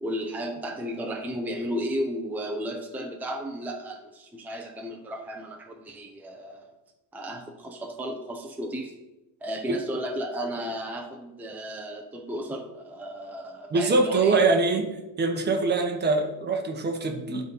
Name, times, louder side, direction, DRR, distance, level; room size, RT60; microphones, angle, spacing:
voice 1, 0.0-6.7 7.1-8.9 9.4-14.4, equal, 5° right, 1 dB, 0.7 m, -34 dB
voice 2, 13.7-14.9 15.2-17.4, right 3 dB, 25° right, 4 dB, 1.1 m, -23 dB
11.0 x 4.1 x 5.4 m, 1.0 s
cardioid pair, 145°, 42 cm